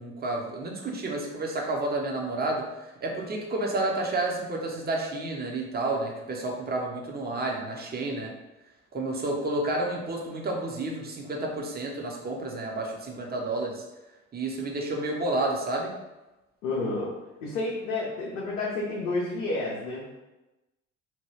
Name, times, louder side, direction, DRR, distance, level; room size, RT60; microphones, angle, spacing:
voice 1, 0.0-2.7 3.0-8.3 8.9-13.8 14.3-15.9, right 2 dB, 25° right, 0 dB, 0.7 m, -30 dB
voice 2, 16.6-17.1 17.4-20.1, left 2 dB, 85° left, -4 dB, 0.6 m, -30 dB
2.9 x 2.2 x 3.2 m, 1.0 s
hypercardioid pair, 50°, 38 cm